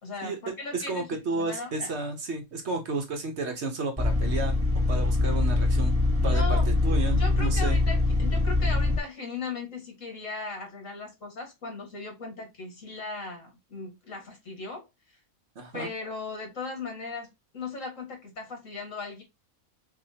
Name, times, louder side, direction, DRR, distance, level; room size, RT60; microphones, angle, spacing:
voice 1, 0.0-2.0 6.2-6.7 7.1-14.9 15.7-19.2, left 3 dB, 65° left, 2.1 m, -37 dB
voice 2, 0.7-4.5 4.9-5.9 6.2-6.6 6.8-7.8 15.6-15.9, right 3 dB, 55° right, 1.3 m, -32 dB
sound 1, 4.0-9.0, left 2 dB, 10° right, 1.1 m, -23 dB
6.2 x 2.7 x 2.8 m
omnidirectional pair, 1.4 m